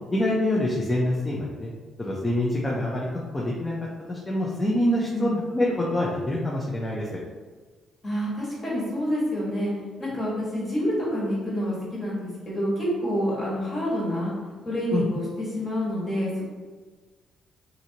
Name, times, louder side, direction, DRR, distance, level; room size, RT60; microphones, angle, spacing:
voice 1, 0.1-1.7 2.0-3.7 4.1-7.1 14.9-15.0, left 1 dB, 20° left, -5 dB, 0.5 m, -26 dB
voice 2, 8.0-9.7 10.0-14.3 14.6-16.4, equal, 35° left, -7 dB, 1.5 m, -27 dB
2.7 x 2.6 x 2.8 m, 1.4 s
cardioid pair, 90°, 0 cm